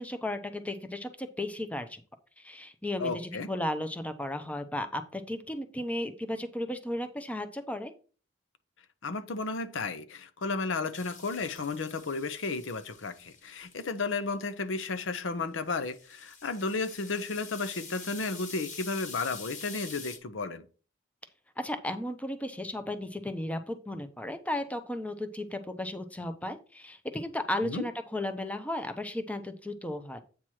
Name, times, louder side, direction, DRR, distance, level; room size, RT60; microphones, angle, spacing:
voice 1, 0.0-2.0 2.4-7.9 21.6-30.2, left 1 dB, 10° left, 0.6 m, -35 dB
voice 2, 3.0-3.5 9.0-20.7 27.6-27.9, left 3 dB, 85° left, 0.7 m, -33 dB
sound 1, 10.9-13.9 15.7-20.2, left 4 dB, 40° left, 1.6 m, -46 dB
8.5 x 3.0 x 6.2 m
head